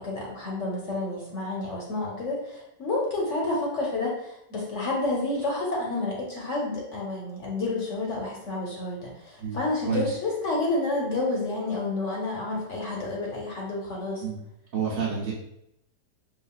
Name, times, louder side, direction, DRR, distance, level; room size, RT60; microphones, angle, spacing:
voice 1, 0.0-14.2, left 2 dB, 60° left, -2 dB, 0.9 m, -29 dB
voice 2, 14.7-15.3, right 6 dB, 60° right, -3 dB, 1.2 m, -28 dB
5.0 x 2.4 x 2.3 m, 0.81 s
omnidirectional pair, 1.7 m